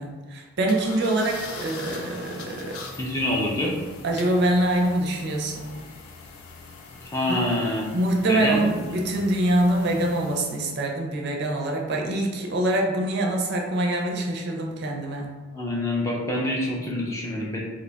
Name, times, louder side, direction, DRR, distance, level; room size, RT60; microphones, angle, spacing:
voice 1, 0.0-2.8 4.0-5.7 7.3-7.4 7.9-15.3, right 1 dB, 50° right, 1 dB, 0.4 m, -24 dB
sound 1, 0.7-10.8, left 3 dB, 80° left, 0.4 m, -42 dB
voice 2, 3.0-3.7 7.1-7.9 8.3-8.7 15.5-17.6, left 1 dB, 15° left, -3 dB, 0.4 m, -26 dB
2.6 x 2.2 x 3.9 m, 1.3 s
head